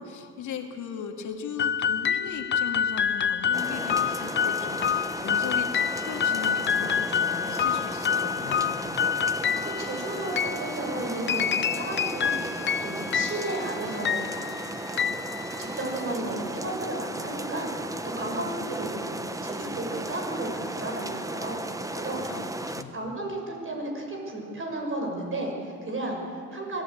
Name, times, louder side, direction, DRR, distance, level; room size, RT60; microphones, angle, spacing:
voice 1, 0.0-8.9 12.3-12.6 22.2-22.9, left 6 dB, 75° left, 4 dB, 2.2 m, -38 dB
sound 1, 1.6-16.0, left 8 dB, 40° left, 0.5 m, -28 dB
sound 2, 3.5-22.8, right 1 dB, 10° right, 1.2 m, -35 dB
voice 2, 9.5-15.3 15.6-19.2 19.4-21.6 21.9-22.2 22.9-26.8, right 2 dB, 45° right, 1 dB, 6.2 m, -34 dB
23.5 x 14.5 x 8.6 m, 2.4 s
cardioid pair, 90°, 30 cm